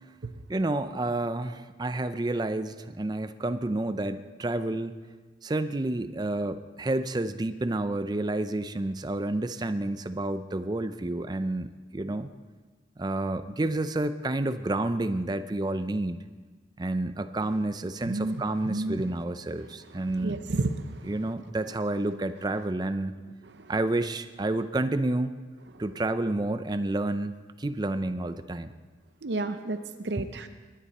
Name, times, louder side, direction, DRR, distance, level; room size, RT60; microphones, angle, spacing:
voice 1, 0.5-4.9 5.4-12.3 13.0-16.2 16.8-20.4 21.1-23.1 23.7-25.4 25.8-27.3 27.6-28.7 30.2-30.3, right 2 dB, 20° right, 11 dB, 0.4 m, -29 dB
voice 2, 18.0-19.1 19.6-21.3 23.5-23.7 25.7-25.8 29.2-30.5, right 2 dB, 70° right, 8 dB, 0.6 m, -32 dB
20.5 x 10.0 x 4.2 m, 1.4 s
head